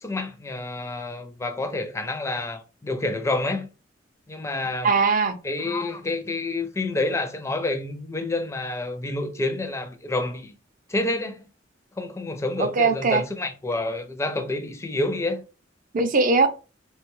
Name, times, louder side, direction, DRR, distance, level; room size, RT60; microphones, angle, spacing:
voice 1, 0.0-3.7 4.3-4.9 5.4-10.5 10.9-11.5 12.0-15.4, left 2 dB, 15° left, 0.4 m, -28 dB
voice 2, 4.8-5.3 12.6-13.2 15.9-16.5, right 4 dB, 45° right, 0.4 m, -20 dB
3.1 x 2.2 x 3.0 m
head